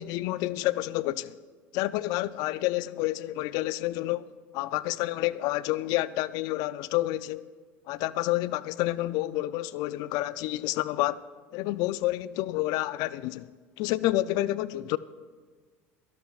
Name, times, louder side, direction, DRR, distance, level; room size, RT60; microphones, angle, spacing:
voice 1, 0.0-1.3 1.7-7.4 7.9-11.2 11.5-13.5 13.8-15.0, left 17 dB, 65° left, 0.4 m, -29 dB
23.0 x 11.5 x 2.4 m
hypercardioid pair, 80°, 7 cm